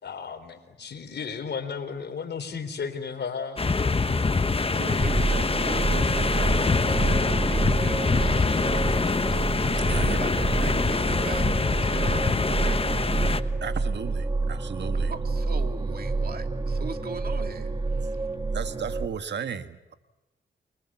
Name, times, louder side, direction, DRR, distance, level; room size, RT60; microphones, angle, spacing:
voice 1, 0.0-3.6, left 6 dB, 65° left, 8 dB, 3.9 m, -34 dB
sound 1, 3.6-13.4, left 4 dB, 30° left, 1.3 m, -24 dB
voice 2, 4.7-8.6 9.9-11.5 11.8-13.0 15.1-18.2, right 5 dB, 55° right, 6 dB, 2.7 m, -40 dB
sound 2, 5.0-19.1, right 3 dB, 25° right, 1.9 m, -28 dB
sound 3, 7.3-11.9, equal, 5° right, 7.8 m, -48 dB
voice 3, 13.6-15.1 18.5-19.9, right 7 dB, 70° right, 9 dB, 1.7 m, -34 dB
30.0 x 24.5 x 7.5 m, 1.1 s
cardioid pair, 65°, 19 cm